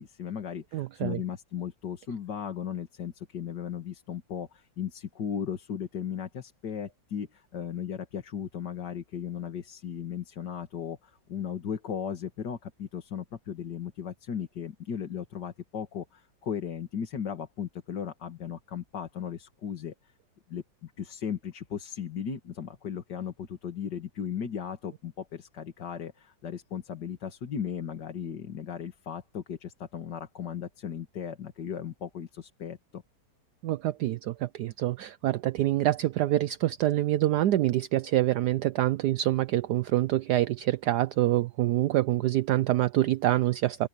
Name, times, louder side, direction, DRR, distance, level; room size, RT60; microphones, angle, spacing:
voice 1, 0.0-19.9 20.5-33.0, left 8 dB, 65° left, 2.3 m, -36 dB
voice 2, 0.7-1.2 33.6-43.9, right 14 dB, 70° right, 1.1 m, -26 dB
open air
omnidirectional pair, 2.0 m